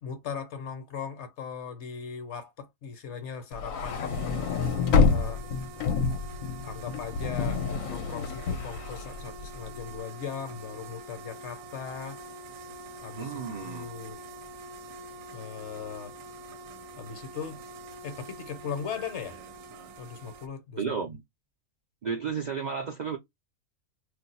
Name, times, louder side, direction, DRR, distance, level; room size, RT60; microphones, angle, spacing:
voice 1, 0.0-5.4 6.6-12.2 13.0-13.3 13.6-14.2 15.3-16.1 17.0-17.6 18.0-19.4 20.0-20.8, left 6 dB, 60° left, 1.0 m, -39 dB
sound 1, 3.5-9.8, left 5 dB, 80° left, 1.0 m, -28 dB
sound 2, 3.6-20.5, right 2 dB, 80° right, 1.0 m, -45 dB
voice 2, 13.2-13.9 20.8-21.2 22.0-23.2, right 6 dB, 55° right, 0.5 m, -32 dB
2.5 x 2.2 x 4.0 m
omnidirectional pair, 1.4 m